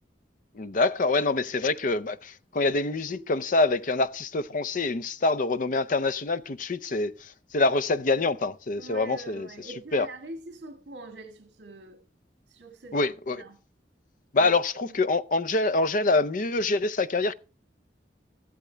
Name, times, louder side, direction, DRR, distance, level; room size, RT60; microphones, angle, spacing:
voice 1, 0.6-9.5 9.9-10.1 12.9-13.4 14.3-17.3, left 3 dB, 45° left, 0.5 m, -25 dB
sound 1, 3.1-6.5, left 4 dB, 35° right, 7.4 m, -57 dB
voice 2, 8.8-12.0 12.5-13.0 13.3-13.6 14.4-14.5 14.9-15.0, right 2 dB, 70° right, 1.6 m, -43 dB
14.0 x 12.0 x 3.3 m
head